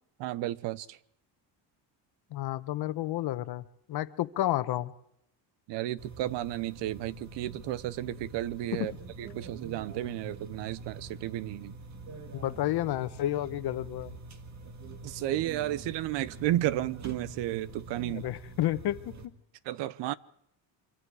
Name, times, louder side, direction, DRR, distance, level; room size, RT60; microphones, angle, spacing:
voice 1, 0.2-1.0 5.7-8.9 9.2-11.8 15.0-18.3 19.6-20.1, right 14 dB, 80° right, 0.9 m, -33 dB
voice 2, 2.3-4.9 8.7-8.9 12.3-14.1 18.0-19.3, left 14 dB, 65° left, 1.1 m, -31 dB
sound 1, 6.0-19.3, right 3 dB, 40° right, 1.9 m, -46 dB
25.5 x 24.0 x 4.8 m
cardioid pair, 125°, 42 cm